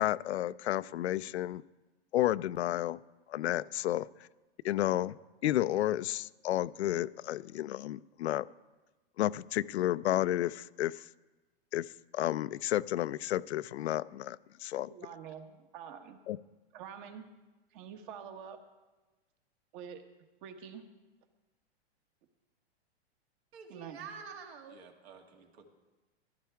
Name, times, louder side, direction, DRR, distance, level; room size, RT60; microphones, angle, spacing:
voice 1, 0.0-1.6 2.1-3.0 3.3-4.1 4.6-5.2 5.4-8.4 9.2-11.0 11.7-11.9 12.1-14.9 16.3-16.4, left 14 dB, 85° left, 17 dB, 0.5 m, -31 dB
voice 2, 14.8-16.2 16.7-17.2 17.7-18.6 19.7-20.0 20.4-20.8 23.7-24.1, right 8 dB, 50° right, 6 dB, 1.5 m, -46 dB
voice 3, 23.5-25.7, right 6 dB, 70° right, 3 dB, 2.2 m, -48 dB
14.0 x 12.5 x 3.5 m, 1.2 s
hypercardioid pair, 130°, 32 cm